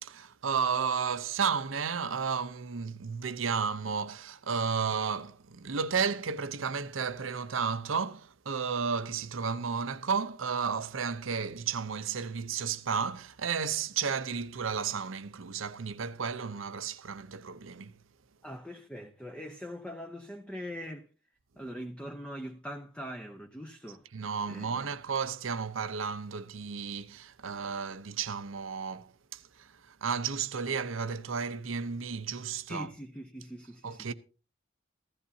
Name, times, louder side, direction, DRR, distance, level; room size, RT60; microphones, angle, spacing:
voice 1, 0.0-18.0 24.1-32.9 33.8-34.1, right 6 dB, 90° right, 0.7 m, -33 dB
voice 2, 18.4-21.1 21.6-24.1 24.5-25.0 32.7-34.1, equal, 5° left, 0.7 m, -42 dB
15.0 x 13.0 x 2.7 m
head